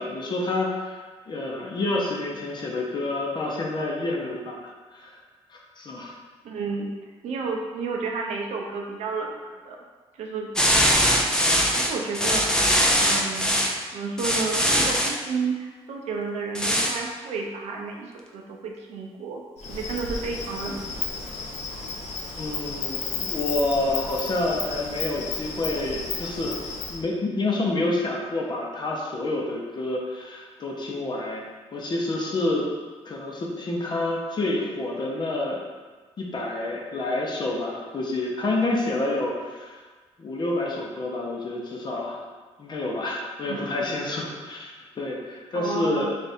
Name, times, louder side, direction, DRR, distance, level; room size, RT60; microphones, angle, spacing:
voice 1, 0.0-5.1 5.5-6.1 22.4-26.6 26.9-31.4 31.7-32.7 33.1-35.6 36.2-39.8 40.2-42.2 42.6-46.2, left 2 dB, 40° left, -2 dB, 0.7 m, -28 dB
voice 2, 6.4-6.9 7.2-9.8 10.2-10.8 11.7-12.5 13.0-13.5 13.9-19.4 19.7-21.3 43.4-43.7 45.5-46.2, right 4 dB, 85° right, 0 dB, 0.5 m, -32 dB
sound 1, 10.6-13.7 14.2-15.2 16.5-17.0, equal, 5° left, 0.4 m, -21 dB
Insect, 19.6-27.0, left 4 dB, 80° left, 0.6 m, -33 dB
3.5 x 2.5 x 4.2 m, 1.4 s
cardioid pair, 115°, 11 cm